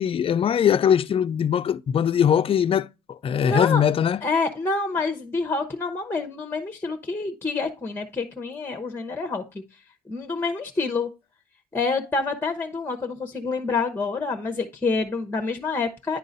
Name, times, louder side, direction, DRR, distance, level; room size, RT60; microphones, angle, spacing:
voice 1, 0.0-4.2, left 8 dB, 35° left, 0.4 m, -21 dB
voice 2, 3.4-3.8 4.2-9.4 10.1-11.1 11.7-16.2, left 4 dB, 15° left, 0.9 m, -27 dB
10.0 x 3.8 x 4.0 m
cardioid pair, 95°, 16 cm